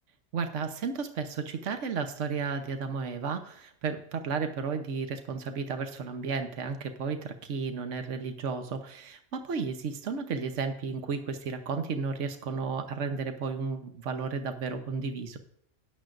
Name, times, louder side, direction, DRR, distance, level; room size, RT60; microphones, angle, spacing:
voice 1, 0.3-15.4, right 5 dB, 70° right, 7 dB, 1.2 m, -33 dB
13.5 x 10.5 x 2.6 m, 0.68 s
omnidirectional pair, 1.3 m